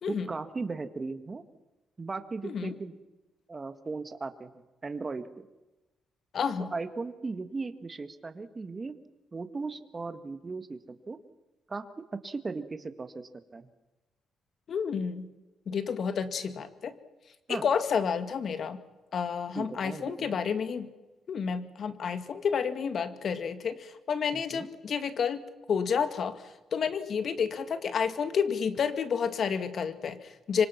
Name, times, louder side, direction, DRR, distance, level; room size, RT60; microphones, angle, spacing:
voice 1, 0.1-1.4 2.0-3.0 3.5-4.5 4.8-5.5 6.7-8.9 9.3-11.2 11.7-11.8 12.1-13.7 17.5-17.7 19.6-20.3 24.3-24.7, right 3 dB, 30° right, 9 dB, 1.9 m, -37 dB
voice 2, 2.4-2.7 6.3-6.7 14.7-15.3 15.7-17.0 17.5-18.8 19.1-20.9 21.3-30.7, left 6 dB, 55° left, 10 dB, 2.0 m, -30 dB
25.5 x 25.0 x 6.0 m, 1.1 s
cardioid pair, 90°, 0 cm